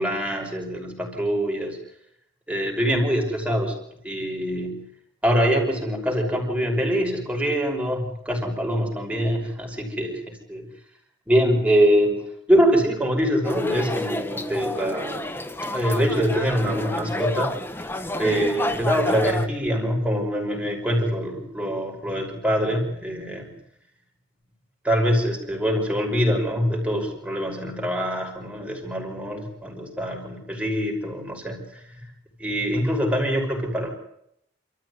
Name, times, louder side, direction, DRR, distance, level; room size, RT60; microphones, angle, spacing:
voice 1, 0.0-1.8 2.5-3.8 4.0-4.8 5.2-10.7 11.3-12.2 12.5-15.2 15.7-17.6 18.2-23.6 24.8-31.8 32.4-33.9, equal, 5° right, 1 dB, 5.8 m, -24 dB
sound 1, 13.4-19.5, left 1 dB, 10° left, 1.2 m, -29 dB
28.5 x 14.0 x 9.6 m, 0.76 s
head